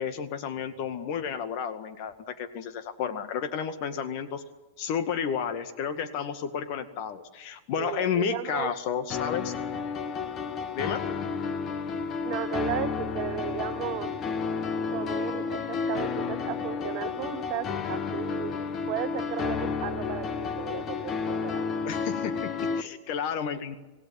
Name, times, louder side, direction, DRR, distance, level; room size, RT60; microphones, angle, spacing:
voice 1, 0.0-4.4 4.8-9.5 10.7-11.1 21.8-23.8, left 7 dB, 45° left, 10 dB, 2.0 m, -31 dB
voice 2, 7.8-8.7 12.2-14.1 14.9-18.6 18.9-21.8 22.8-22.9, right 13 dB, 45° right, 11 dB, 1.3 m, -35 dB
sound 1, 9.1-22.8, left 5 dB, 30° left, 1.6 m, -31 dB
sound 2, 13.4-21.0, right 3 dB, 10° right, 5.2 m, -52 dB
27.0 x 17.0 x 9.4 m, 1.2 s
figure-of-eight pair, 90°, 0 cm